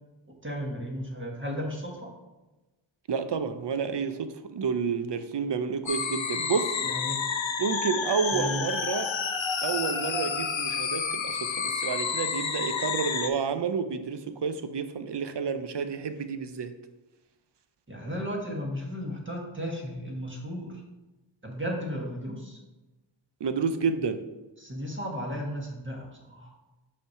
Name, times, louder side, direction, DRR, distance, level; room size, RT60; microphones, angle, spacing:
voice 1, 0.4-2.1 6.8-7.2 8.3-8.7 17.9-20.8 21.4-22.6 24.6-26.5, equal, 25° right, -1 dB, 1.5 m, -34 dB
voice 2, 3.1-6.8 7.6-9.1 9.6-16.7 23.4-24.2, right 6 dB, 65° right, 10 dB, 0.6 m, -30 dB
sound 1, 5.9-13.3, left 6 dB, 75° left, 0.6 m, -30 dB
5.7 x 3.2 x 5.6 m, 1.1 s
wide cardioid pair, 45°, 46 cm